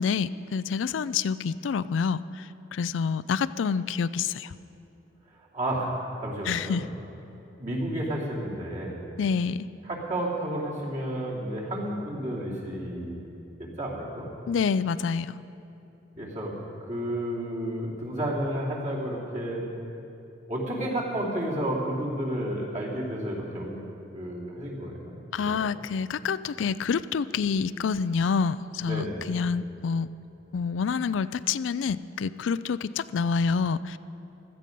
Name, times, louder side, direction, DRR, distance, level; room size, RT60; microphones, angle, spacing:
voice 1, 0.0-2.2 2.7-4.5 6.4-6.8 9.2-9.7 14.5-15.3 25.3-30.1 30.5-34.0, left 5 dB, 85° left, 16 dB, 0.4 m, -27 dB
voice 2, 5.5-5.9 6.2-6.8 7.6-9.0 9.8-13.3 13.6-14.3 16.2-16.6 16.9-19.6 20.5-23.8 24.1-25.6 28.8-29.3, right 1 dB, 40° right, -4 dB, 2.8 m, -31 dB
16.0 x 13.0 x 5.3 m, 2.9 s
head